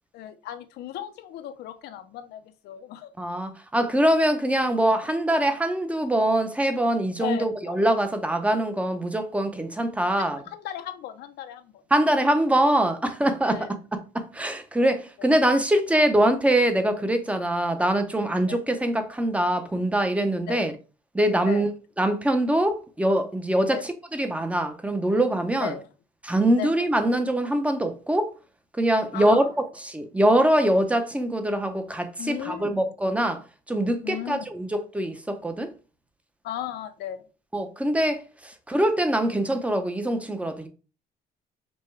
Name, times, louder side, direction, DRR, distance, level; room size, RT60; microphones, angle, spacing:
voice 1, 0.1-3.1 7.2-7.8 10.2-11.8 13.4-13.7 15.2-15.3 18.5-18.6 20.5-20.7 21.4-21.6 23.7-23.8 25.6-25.8 26.6-26.8 29.1-29.5 32.2-32.8 34.0-34.4 36.4-37.2, left 11 dB, 75° left, 0.6 m, -36 dB
voice 2, 3.2-10.4 11.9-20.7 21.1-21.7 22.0-25.7 26.2-28.3 28.8-29.4 29.8-33.4 33.7-35.7 37.5-40.7, right 1 dB, 10° right, 0.6 m, -23 dB
5.3 x 2.2 x 3.2 m
cardioid pair, 110°, 17 cm